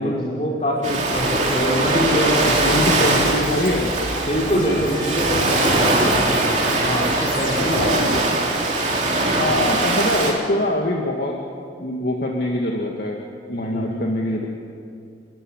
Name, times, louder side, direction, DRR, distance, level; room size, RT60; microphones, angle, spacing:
voice 1, 0.0-2.8 4.2-8.0 9.0-9.4 13.7-13.9, equal, 35° left, -2 dB, 4.7 m, -24 dB
Ocean, 0.8-10.3, right 2 dB, 40° right, 3.1 m, -21 dB
sound 1, 1.1-8.9, left 2 dB, 85° left, 3.8 m, -32 dB
voice 2, 2.5-3.9 7.7-8.1 9.4-11.4 11.8-13.2 13.5-14.5, left 1 dB, 55° left, -1 dB, 2.1 m, -23 dB
28.5 x 14.0 x 9.5 m, 2.3 s
head